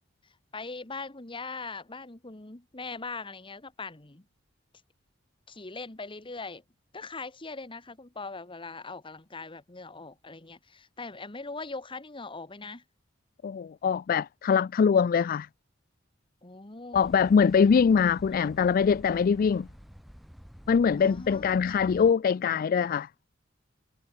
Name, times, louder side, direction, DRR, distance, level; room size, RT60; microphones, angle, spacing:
voice 1, 0.5-4.2 5.5-6.6 6.9-12.8 16.4-17.2 21.0-21.8, left 3 dB, 25° left, 1.4 m, -41 dB
voice 2, 13.4-15.5 16.9-19.7 20.7-23.1, left 6 dB, 50° left, 0.3 m, -23 dB
sound 1, 16.9-22.1, equal, ahead, 0.7 m, -49 dB
head